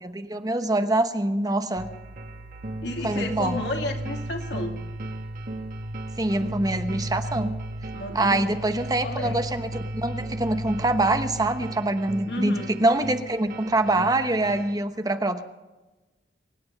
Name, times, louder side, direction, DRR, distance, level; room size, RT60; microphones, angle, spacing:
voice 1, 0.0-1.9 3.0-3.5 6.2-7.5 8.1-15.4, right 2 dB, 20° right, 8 dB, 1.0 m, -25 dB
sound 1, 1.8-14.8, right 1 dB, 55° right, 1.5 m, -34 dB
voice 2, 2.8-4.8 7.9-8.5 9.0-9.4 12.3-12.8, left 1 dB, 75° left, 2 dB, 2.6 m, -32 dB
24.5 x 9.6 x 5.4 m, 1.1 s
head